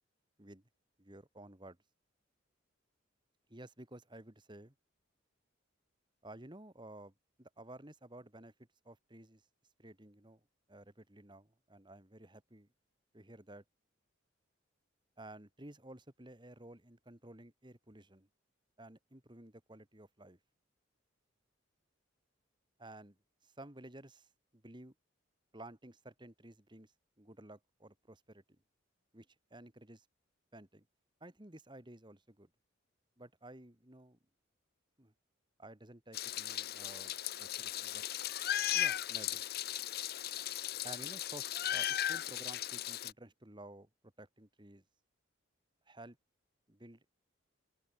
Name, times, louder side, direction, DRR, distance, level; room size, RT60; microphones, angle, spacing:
voice 1, 1.0-1.8 3.5-4.7 6.2-7.1 7.4-8.5 8.8-9.4 9.8-10.4 10.7-12.7 13.1-13.6 15.2-18.3 18.8-20.4 22.8-23.2 23.4-24.9 25.5-28.6 29.1-30.1 30.5-30.9 31.2-32.5 33.2-34.2 35.0-35.1 35.6-38.0 38.7-39.4 40.8-43.9 44.2-44.8 45.9-46.2 46.7-47.1, right 1 dB, 25° right, 2.2 m, -53 dB
Meow, 36.1-43.1, left 12 dB, 50° left, 0.7 m, -37 dB
open air
head